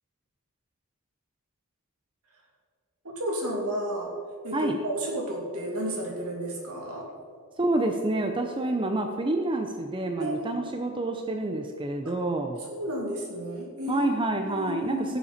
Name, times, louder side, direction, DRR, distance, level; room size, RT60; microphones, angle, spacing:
voice 1, 3.0-4.1 4.4-7.1 10.2-10.7 12.0-12.1 12.7-14.1 14.5-15.2, right 1 dB, 75° right, -2 dB, 3.0 m, -32 dB
voice 2, 7.6-12.6 13.9-15.2, right 2 dB, 20° right, 4 dB, 0.7 m, -28 dB
16.5 x 7.1 x 4.4 m, 2.1 s
head